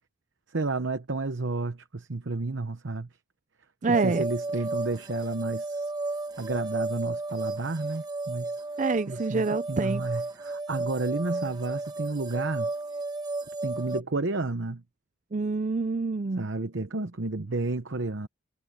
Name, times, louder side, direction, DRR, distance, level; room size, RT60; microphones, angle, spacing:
voice 1, 0.5-3.1 3.9-5.9 6.4-8.5 9.1-12.7 13.6-14.8 16.4-18.3, right 3 dB, 60° right, 0.9 m, -31 dB
voice 2, 3.8-4.2 8.8-10.1 15.3-16.5, right 3 dB, 35° right, 0.5 m, -27 dB
sound 1, 3.9-14.0, right 2 dB, 20° right, 1.3 m, -33 dB
head